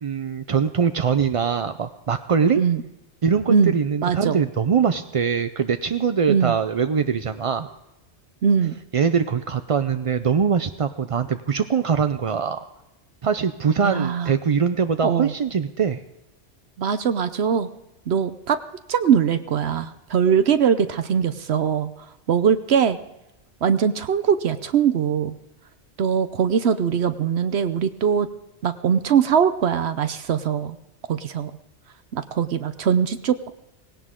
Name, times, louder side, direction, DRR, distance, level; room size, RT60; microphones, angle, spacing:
voice 1, 0.0-2.6 3.2-7.7 8.9-12.6 13.2-16.0, right 6 dB, 45° right, 9 dB, 0.4 m, -22 dB
voice 2, 4.0-4.4 6.3-6.5 8.4-8.8 13.8-14.3 15.0-15.3 16.8-17.7 18.1-18.6 18.9-21.9 22.3-23.0 23.6-25.3 26.0-28.3 28.6-30.8 31.1-31.5 32.1-33.5, right 7 dB, 70° right, 11 dB, 1.0 m, -21 dB
18.0 x 17.0 x 3.7 m, 0.94 s
omnidirectional pair, 1.2 m